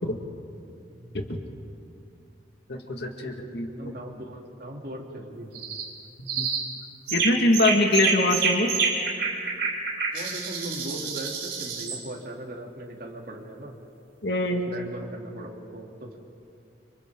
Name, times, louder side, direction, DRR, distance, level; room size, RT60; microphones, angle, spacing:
voice 1, 0.9-1.3 3.7-5.6 10.1-13.8 14.5-16.2, right 1 dB, 55° right, -1 dB, 2.9 m, -39 dB
voice 2, 2.7-3.9 6.2-6.5 7.1-8.7 14.2-14.7, left 1 dB, 70° left, 3 dB, 1.9 m, -24 dB
sound 1, 5.5-5.9 6.3-6.7 7.1-12.0, right 4 dB, 80° right, 5.5 m, -28 dB
30.0 x 26.0 x 3.8 m, 2.5 s
head